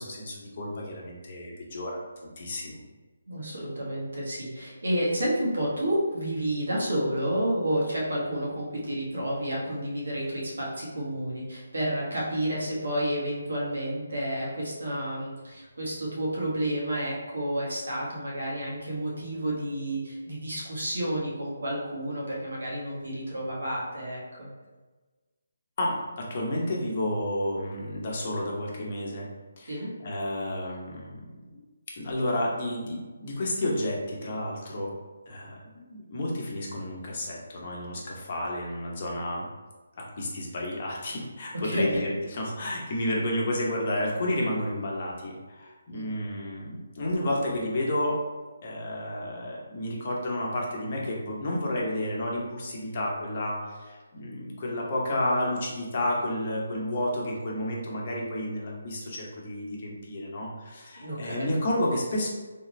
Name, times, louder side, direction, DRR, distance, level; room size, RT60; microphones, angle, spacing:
voice 1, 0.0-2.8 25.8-29.3 29.6-31.1 31.5-31.6 32.0-34.9 35.3-39.5 40.0-48.2 48.6-62.3, left 1 dB, 40° left, -3 dB, 0.8 m, -31 dB
voice 2, 3.3-24.5 29.7-29.9 41.5-42.0 45.9-46.2 61.0-61.5, right 1 dB, 85° right, -4 dB, 1.4 m, -30 dB
3.7 x 2.5 x 3.1 m, 1.3 s
hypercardioid pair, 160°, 0 cm